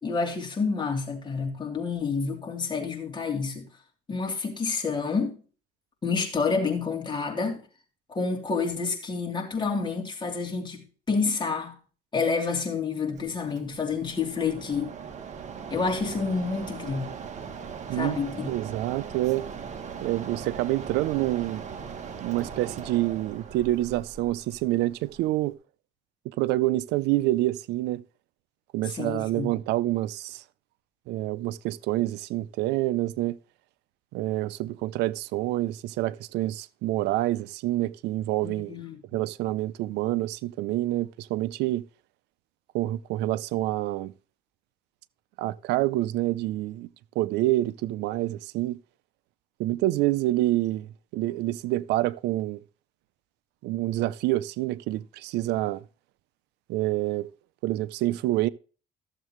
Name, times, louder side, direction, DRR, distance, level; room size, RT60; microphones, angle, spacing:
voice 1, 0.0-3.7 4.1-5.4 6.0-7.6 8.1-11.7 12.1-14.9 15.7-17.1 17.9-18.5 28.8-29.5 38.4-39.0, left 4 dB, 25° left, 3.0 m, -29 dB
Mechanisms, 13.1-25.5, right 6 dB, 45° right, 1.6 m, -40 dB
voice 2, 18.5-19.5 20.0-21.6 22.2-25.6 26.4-28.0 28.7-30.4 31.1-33.4 34.1-38.7 39.1-41.8 42.7-44.1 45.4-46.9 47.2-48.8 49.6-52.6 53.6-55.8 56.7-57.3 57.6-58.5, right 16 dB, 85° right, 0.5 m, -27 dB
14.0 x 7.4 x 3.1 m
cardioid pair, 110°, 17 cm